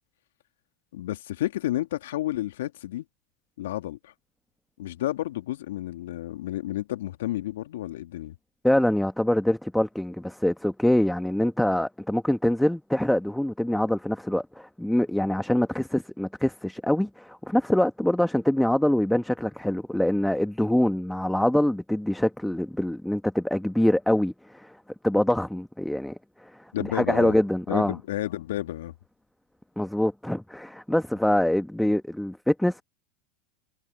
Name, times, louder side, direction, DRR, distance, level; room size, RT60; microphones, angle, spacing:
voice 1, 0.9-3.0 3.6-4.1 4.8-8.4 26.7-27.4 27.7-28.9, left 14 dB, 70° left, 2.3 m, -31 dB
voice 2, 8.6-24.8 25.0-27.9 29.8-32.8, left 1 dB, 5° left, 1.5 m, -24 dB
hypercardioid pair, 90°, 0 cm